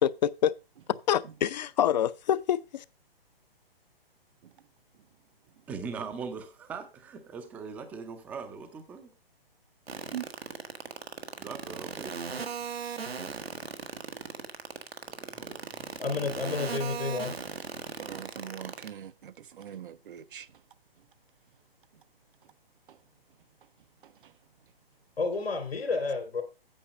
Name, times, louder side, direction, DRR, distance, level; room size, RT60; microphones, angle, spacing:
voice 1, 0.0-0.5 1.1-2.8, left 10 dB, 45° left, 0.5 m, -26 dB
voice 2, 5.7-9.1 11.3-12.4 15.0-15.8, right 5 dB, 5° right, 0.4 m, -41 dB
sound 1, 9.9-18.9, right 5 dB, 90° right, 1.3 m, -36 dB
voice 3, 16.0-17.3 25.2-26.4, left 4 dB, 75° left, 2.8 m, -30 dB
voice 4, 18.0-20.5 22.9-23.0 24.0-24.3, right 10 dB, 60° right, 0.5 m, -42 dB
8.8 x 6.1 x 5.0 m
hypercardioid pair, 135°, 30 cm